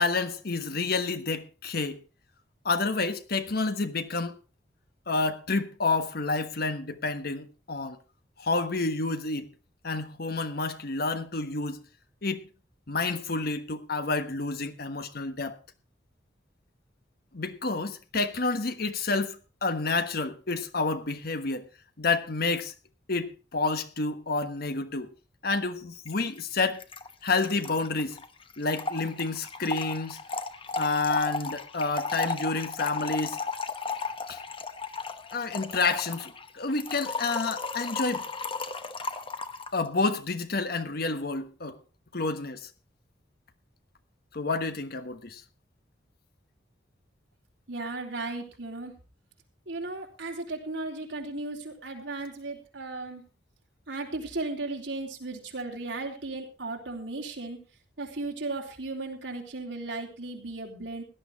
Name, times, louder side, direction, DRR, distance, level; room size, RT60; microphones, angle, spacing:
voice 1, 0.0-2.0 2.6-4.3 5.1-8.0 8.4-9.5 9.8-11.8 12.2-12.5 12.9-15.6 17.3-21.7 22.0-22.7 23.1-25.1 25.4-26.8 27.2-28.2 28.6-30.2 30.8-33.4 34.3-34.4 35.3-38.3 39.7-41.8 42.1-42.7 44.3-45.4, left 3 dB, 60° left, 1.3 m, -29 dB
Trickle dribble / Fill (with liquid), 26.1-26.2 26.4-26.5 26.7-39.8, left 4 dB, 30° left, 1.0 m, -35 dB
voice 2, 47.7-48.9 49.7-53.2 53.9-57.6 58.0-61.0, right 2 dB, 85° right, 3.3 m, -36 dB
17.0 x 11.5 x 3.5 m
head